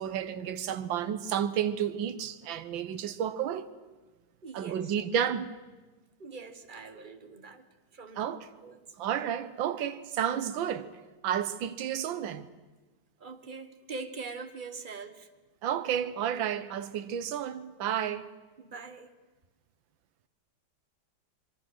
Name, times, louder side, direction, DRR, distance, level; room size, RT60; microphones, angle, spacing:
voice 1, 0.0-3.7 4.5-5.5 8.2-8.5 9.0-10.9 11.2-12.5 15.6-18.2, right 9 dB, 75° right, 1.7 m, -31 dB
voice 2, 4.4-4.9 6.2-7.7 7.9-8.8 13.2-15.3 18.6-19.1, right 4 dB, 30° right, 1.1 m, -43 dB
26.0 x 22.0 x 6.3 m
omnidirectional pair, 2.1 m